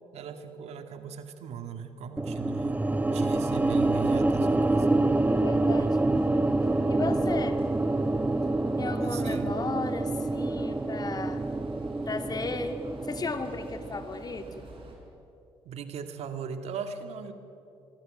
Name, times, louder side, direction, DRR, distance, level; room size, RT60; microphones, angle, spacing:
voice 1, 0.1-2.8 3.1-4.9 9.0-9.5 15.7-17.3, right 7 dB, 70° right, 7 dB, 2.2 m, -39 dB
sound 1, 2.2-14.4, right 2 dB, 15° right, 1.0 m, -27 dB
sound 2, 3.7-15.0, right 2 dB, 50° right, 7.6 m, -47 dB
voice 2, 5.3-6.1 6.9-7.6 8.8-11.4 12.1-14.7, left 3 dB, 35° left, 8 dB, 2.3 m, -35 dB
25.0 x 24.0 x 7.9 m, 2.8 s
supercardioid pair, 65°, 11 cm